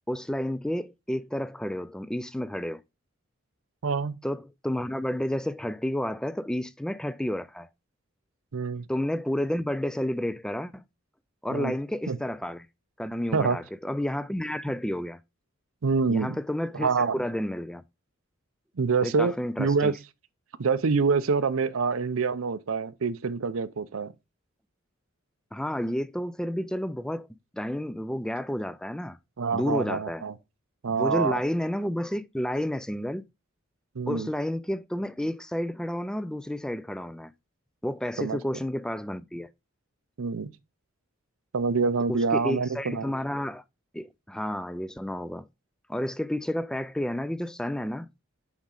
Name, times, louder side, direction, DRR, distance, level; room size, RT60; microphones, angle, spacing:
voice 1, 0.1-2.8 4.2-7.7 8.9-10.8 11.4-12.7 13.0-15.2 16.1-17.8 19.0-19.9 25.5-27.3 27.5-29.2 29.5-30.2 30.9-33.3 34.1-37.3 37.8-39.5 42.1-43.6 43.9-45.5 45.9-48.1, left 1 dB, 5° left, 0.3 m, -31 dB
voice 2, 3.8-4.2 8.5-8.9 11.5-11.7 12.1-12.2 13.3-13.6 15.8-16.4 16.7-17.2 18.8-19.3 19.6-19.9 20.6-24.1 29.4-30.3 30.8-31.4 34.0-34.3 38.2-38.4 40.2-40.5 41.5-43.1, right 5 dB, 90° right, 0.6 m, -26 dB
7.2 x 5.1 x 3.8 m
head